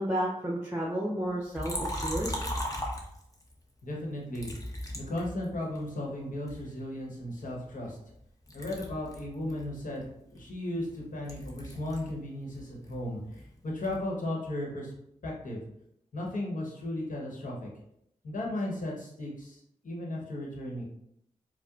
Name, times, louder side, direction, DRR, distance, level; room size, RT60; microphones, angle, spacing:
voice 1, 0.0-2.4, right 1 dB, 15° right, -3 dB, 0.8 m, -31 dB
Liquid, 1.6-3.5 4.3-5.9 6.5-8.2 8.5-12.2 12.5-14.1, equal, 25° left, 0.9 m, -38 dB
voice 2, 3.8-4.5 4.9-8.0 8.5-13.2 13.6-14.9 15.2-15.6 16.1-17.7 18.2-20.8, left 1 dB, 70° left, -2 dB, 1.0 m, -35 dB
4.4 x 2.1 x 2.4 m, 0.76 s
cardioid pair, 40°, 14 cm